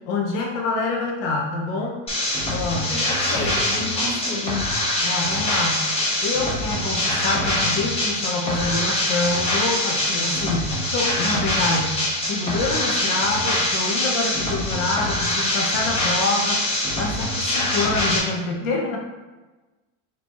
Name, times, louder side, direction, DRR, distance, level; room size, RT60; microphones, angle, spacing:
voice 1, 0.1-2.0 2.5-3.0 5.0-5.9 6.2-12.0 12.3-16.6 17.0-19.0, left 3 dB, 85° left, 0 dB, 0.8 m, -26 dB
sound 1, 2.1-18.2, left 1 dB, 15° left, 0.7 m, -24 dB
voice 2, 2.9-4.7 18.6-19.0, left 2 dB, 35° left, -4 dB, 1.2 m, -30 dB
4.3 x 3.0 x 2.9 m, 1.2 s
cardioid pair, 160°, 40 cm